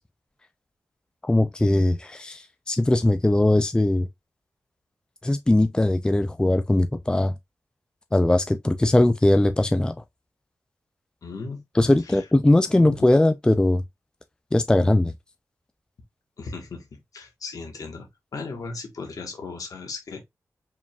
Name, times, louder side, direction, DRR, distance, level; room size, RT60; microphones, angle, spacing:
voice 1, 1.2-2.4 2.7-4.1 5.2-7.3 8.1-9.9 11.8-13.8 14.5-15.1, left 1 dB, 15° left, 0.4 m, -20 dB
voice 2, 11.2-12.3 12.8-13.1 16.4-20.2, left 4 dB, 70° left, 1.4 m, -37 dB
4.8 x 3.7 x 2.3 m
cardioid pair, 75°, 6 cm